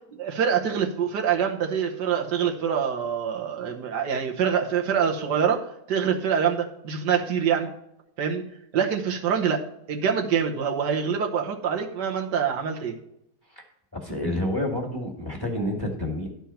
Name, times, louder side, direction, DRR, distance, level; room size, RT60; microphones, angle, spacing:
voice 1, 0.1-7.7 8.2-8.4 8.7-13.0, right 7 dB, 90° right, 1 dB, 1.7 m, -25 dB
voice 2, 13.9-16.3, left 1 dB, 15° left, 0 dB, 1.9 m, -28 dB
12.0 x 4.5 x 5.7 m, 0.80 s
omnidirectional pair, 1.7 m